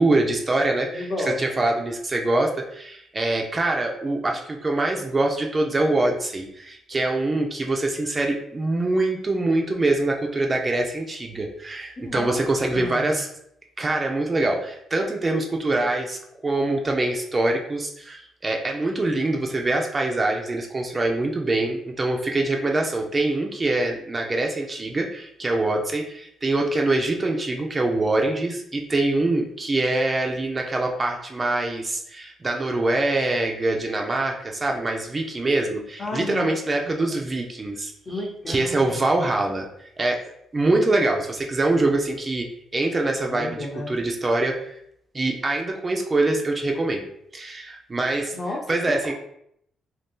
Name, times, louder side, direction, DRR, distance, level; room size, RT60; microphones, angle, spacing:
voice 1, 0.0-13.3 13.8-37.9 38.5-39.7 40.0-40.3 40.5-42.5 42.7-43.6 43.9-44.8 45.1-47.1 47.3-48.4 48.7-49.1, right 2 dB, 30° right, 1 dB, 0.5 m, -24 dB
voice 2, 0.9-1.6 12.0-12.4 12.7-13.1 36.0-36.5 36.8-37.2 38.1-39.0 43.2-44.0 48.3-49.1, left 2 dB, 35° left, 0 dB, 0.8 m, -32 dB
2.6 x 2.3 x 3.5 m, 0.72 s
cardioid pair, 90°, 0 cm